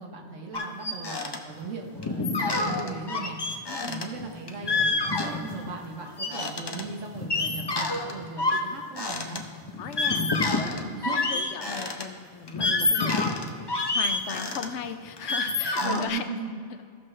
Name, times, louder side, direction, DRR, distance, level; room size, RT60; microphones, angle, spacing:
voice 1, 0.0-9.4 10.2-11.4 11.7-11.9 15.8-16.6, right 4 dB, 85° right, 1 dB, 1.4 m, -38 dB
sound 1, 0.5-1.4 1.6-1.7 1.9-5.8 6.0-12.0 12.5-16.1, left 3 dB, 30° left, 0.5 m, -27 dB
voice 2, 3.7-4.0 9.8-13.3 13.9-16.2, left 7 dB, 75° left, 9 dB, 0.9 m, -37 dB
15.5 x 6.1 x 3.2 m, 2.1 s
omnidirectional pair, 1.3 m